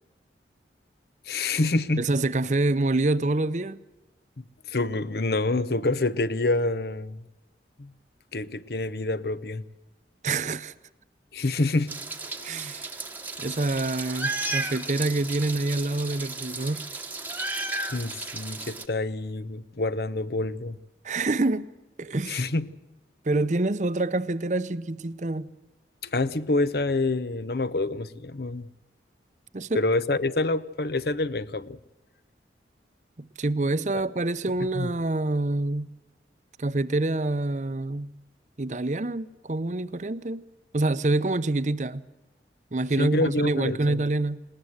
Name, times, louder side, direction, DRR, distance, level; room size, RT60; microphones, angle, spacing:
voice 1, 1.3-2.1 4.7-7.2 7.8-7.9 8.3-9.6 11.3-11.9 17.9-20.8 22.3-22.7 26.0-28.7 29.7-31.8 33.9-34.0 34.6-34.9 43.0-44.0, left 2 dB, 60° left, 0.8 m, -27 dB
voice 2, 2.0-3.8 10.2-10.7 12.4-12.9 13.4-16.8 21.0-21.7 22.0-22.4 23.3-25.5 29.5-29.8 33.2-35.9 36.6-38.1 38.6-40.4 40.7-42.0 42.7-44.4, right 2 dB, 40° right, 0.7 m, -26 dB
Meow, 11.9-18.8, right 3 dB, 10° right, 1.1 m, -34 dB
19.5 x 19.5 x 7.9 m
head